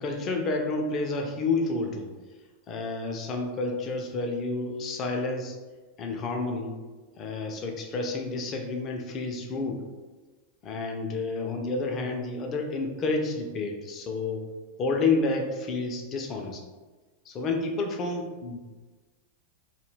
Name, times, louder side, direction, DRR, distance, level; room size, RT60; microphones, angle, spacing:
voice 1, 0.0-2.1 2.7-5.6 6.0-6.7 7.2-9.8 10.6-14.4 14.8-16.6 17.3-18.6, left 3 dB, 30° left, 3 dB, 0.4 m, -30 dB
2.2 x 2.1 x 3.2 m, 1.3 s
figure-of-eight pair, 90°, 0 cm